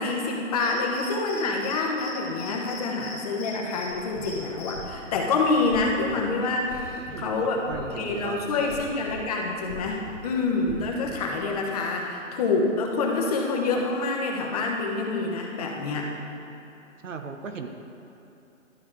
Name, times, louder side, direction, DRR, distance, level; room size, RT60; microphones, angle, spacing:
voice 1, 0.0-16.1, left 3 dB, 30° left, 0 dB, 1.0 m, -27 dB
Cricket, 0.6-1.7 2.0-2.1 2.4-3.8 4.2-4.7, left 5 dB, 5° left, 0.5 m, -41 dB
sound 1, 3.9-11.6, left 2 dB, 80° left, 2.1 m, -43 dB
voice 2, 7.1-8.9 17.0-17.7, right 5 dB, 75° right, 6 dB, 0.9 m, -37 dB
12.5 x 5.9 x 3.7 m, 2.9 s
hypercardioid pair, 150°, 39 cm